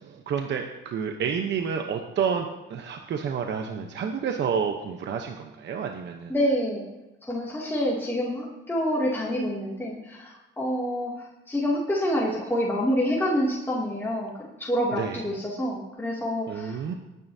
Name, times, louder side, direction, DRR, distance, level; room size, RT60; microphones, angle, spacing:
voice 1, 0.0-6.3 14.9-15.2 16.5-16.9, right 7 dB, 65° right, 4 dB, 1.0 m, -29 dB
voice 2, 6.3-6.9 7.2-17.0, equal, 10° left, -5 dB, 2.5 m, -27 dB
19.5 x 9.5 x 2.8 m, 1.0 s
cardioid pair, 90°, 20 cm